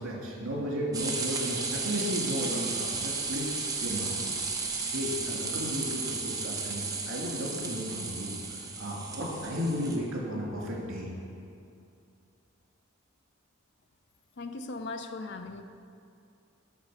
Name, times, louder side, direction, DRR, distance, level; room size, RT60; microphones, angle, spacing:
voice 1, 0.0-3.5 3.8-4.5 4.9-8.3 8.8-11.1, equal, 65° right, -3 dB, 2.5 m, -34 dB
sound 1, 0.9-10.0, right 4 dB, 15° right, 0.8 m, -34 dB
voice 2, 14.4-15.6, left 3 dB, 50° left, 8 dB, 0.5 m, -38 dB
8.1 x 6.6 x 6.3 m, 2.5 s
head